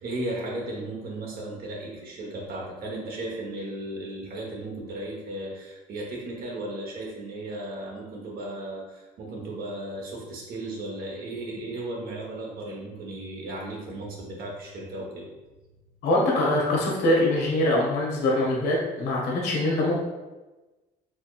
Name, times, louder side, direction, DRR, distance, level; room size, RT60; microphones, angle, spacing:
voice 1, 0.0-15.3, right 1 dB, 60° right, -2 dB, 1.1 m, -35 dB
voice 2, 16.0-20.0, left 1 dB, 90° left, -3 dB, 1.1 m, -23 dB
4.2 x 3.0 x 2.4 m, 1.1 s
cardioid pair, 110°, 17 cm